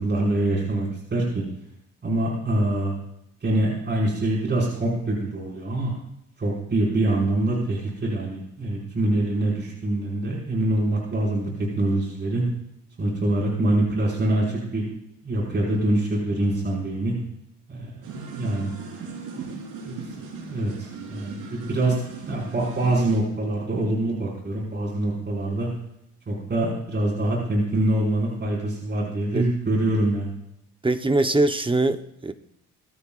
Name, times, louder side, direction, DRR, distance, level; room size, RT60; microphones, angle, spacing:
voice 1, 0.0-1.4 2.0-2.9 3.4-5.9 6.4-11.5 11.8-12.4 13.0-14.9 15.2-17.1 17.7-18.7 19.4-19.5 19.9-20.0 20.4-22.0 22.3-25.7 26.3-30.3, right 1 dB, 35° right, -3 dB, 5.5 m, -24 dB
sound 1, 18.0-23.2, right 4 dB, 90° right, 3.9 m, -38 dB
voice 2, 30.8-32.3, right 2 dB, 15° right, 9 dB, 1.0 m, -22 dB
21.5 x 14.5 x 2.5 m, 0.79 s
cardioid pair, 90°, 30 cm